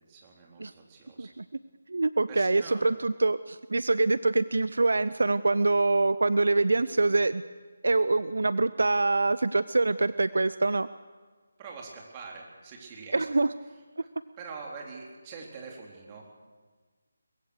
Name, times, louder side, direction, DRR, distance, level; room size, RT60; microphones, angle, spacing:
voice 1, 0.0-1.3 2.3-2.8 11.6-13.3 14.4-16.3, right 4 dB, 25° right, 0 dB, 3.9 m, -44 dB
voice 2, 1.9-7.4 7.8-10.9 13.1-13.5, right 3 dB, 65° right, 15 dB, 0.6 m, -25 dB
23.5 x 21.5 x 6.6 m, 1.4 s
figure-of-eight pair, 155°, 0 cm